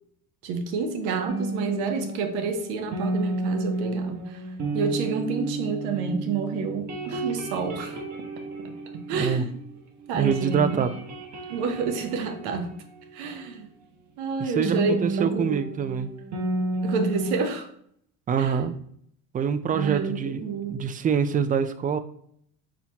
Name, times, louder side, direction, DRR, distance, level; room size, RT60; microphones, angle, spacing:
voice 1, 0.4-4.4 4.7-8.0 8.6-9.5 10.1-10.8 11.5-12.7 13.1-13.7 14.2-15.6 16.8-17.7 18.4-18.6 19.7-20.8, right 5 dB, 70° right, 6 dB, 1.0 m, -29 dB
sound 1, 1.3-9.7 10.0-13.5 14.6-17.3, right 2 dB, 45° right, 1.2 m, -32 dB
voice 2, 9.1-9.4 10.1-10.9 14.4-16.1 18.3-18.7 19.3-20.4 20.7-22.0, right 7 dB, 20° right, 11 dB, 0.4 m, -25 dB
4.3 x 4.2 x 2.8 m, 0.67 s
supercardioid pair, 90°, 40 cm